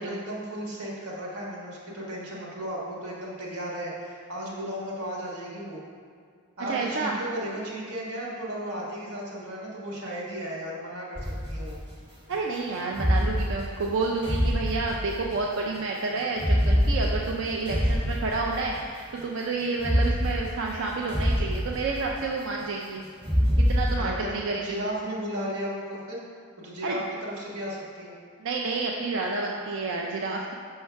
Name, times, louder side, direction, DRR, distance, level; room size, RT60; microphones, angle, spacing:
voice 1, 0.0-5.8 6.6-11.8 24.0-26.2 26.6-28.1, equal, 90° right, -4 dB, 1.4 m, -35 dB
voice 2, 6.7-7.2 12.3-23.0 23.6-24.8 26.8-27.0 28.4-30.5, right 3 dB, 60° right, -1 dB, 0.4 m, -30 dB
sound 1, 11.1-11.9 12.9-15.4 16.3-18.9 19.7-22.3 23.2-24.0, equal, 20° right, 0.8 m, -26 dB
5.5 x 5.5 x 3.4 m, 2.2 s
head